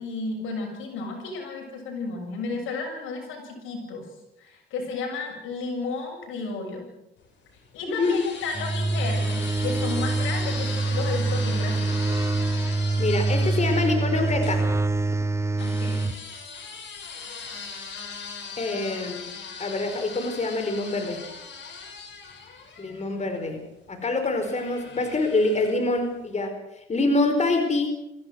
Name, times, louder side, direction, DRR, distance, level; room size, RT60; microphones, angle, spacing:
voice 1, 0.0-4.1 4.4-6.9 7.7-12.0 13.5-13.6 15.6-16.1, left 4 dB, 90° left, 2 dB, 7.0 m, -33 dB
sound 1, 7.2-14.6 15.6-23.5 24.4-26.0, left 5 dB, 65° left, 6.4 m, -39 dB
sound 2, 8.6-16.2, right 3 dB, 15° right, 1.0 m, -25 dB
voice 2, 13.0-14.7 18.6-19.2 19.6-21.2 22.8-23.6 23.9-26.6 26.9-27.9, left 2 dB, 35° left, 6 dB, 4.5 m, -25 dB
24.0 x 16.0 x 7.8 m, 0.86 s
cardioid pair, 90°, 20 cm